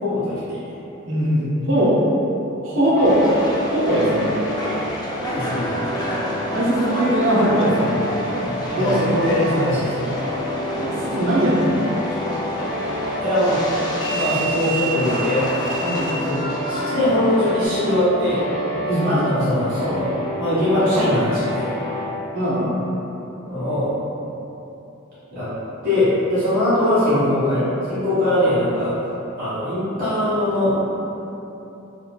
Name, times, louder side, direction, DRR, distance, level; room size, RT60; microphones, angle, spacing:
voice 1, 0.0-0.6 5.2-5.9 8.4-10.3 13.2-13.6 14.1-15.7 16.1-16.4 16.7-18.4 18.8-20.1 20.4-21.7 23.4-23.9 25.3-25.5 25.8-28.9 29.4-30.7, left 1 dB, 45° right, -14 dB, 1.3 m, -21 dB
voice 2, 1.1-2.0 2.6-3.2 3.7-4.3 5.9-6.2 6.5-8.0 8.3-8.4 8.7-9.0 10.8-11.8 12.2-12.4 15.8-16.3 18.8-19.3 22.3-22.7, right 1 dB, 65° right, -6 dB, 0.6 m, -20 dB
sound 1, 3.0-22.1, equal, 55° left, 0.7 m, -29 dB
Subway metro underground, 3.0-17.7, equal, 20° left, 0.3 m, -30 dB
3.0 x 2.7 x 2.2 m, 2.9 s
head